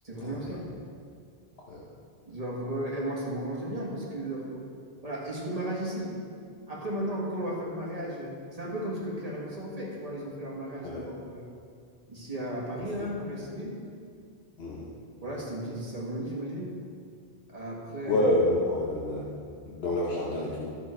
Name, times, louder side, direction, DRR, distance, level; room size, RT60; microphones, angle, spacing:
voice 1, 0.0-0.7 2.3-4.6 5.0-6.1 6.7-11.5 12.1-13.8 15.2-16.7 17.5-18.3, right 1 dB, 35° right, -4 dB, 1.9 m, -35 dB
voice 2, 14.6-14.9 18.1-19.2 19.7-20.7, left 1 dB, 75° left, -4 dB, 1.3 m, -27 dB
12.5 x 7.1 x 4.4 m, 2.3 s
omnidirectional pair, 1.1 m